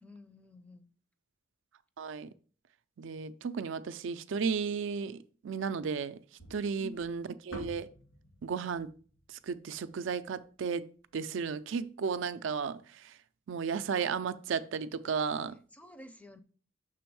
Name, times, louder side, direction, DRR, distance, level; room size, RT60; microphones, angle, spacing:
voice 1, 0.0-0.9 6.8-7.0 15.7-16.4, equal, 5° left, 0.5 m, -50 dB
voice 2, 2.0-2.3 3.0-6.2 6.5-7.9 8.4-8.9 9.3-13.1 13.5-15.6, right 6 dB, 65° right, 0.4 m, -34 dB
sound 1, 6.4-10.7, equal, 90° left, 2.9 m, -50 dB
6.1 x 3.5 x 4.6 m
head